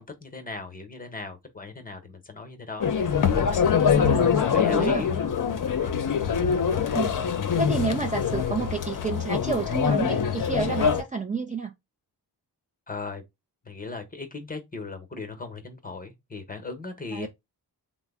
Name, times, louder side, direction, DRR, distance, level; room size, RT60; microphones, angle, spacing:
voice 1, 0.0-5.3 5.6-5.9 6.2-7.1 12.9-13.2 13.6-17.3, left 3 dB, 20° left, 0.9 m, -38 dB
sound 1, 2.8-11.0, left 7 dB, 50° left, 0.6 m, -24 dB
voice 2, 3.8-5.0 6.9-7.1 7.6-11.7 17.1-17.3, right 4 dB, 20° right, 0.4 m, -30 dB
3.3 x 2.0 x 3.4 m
cardioid pair, 85°, 41 cm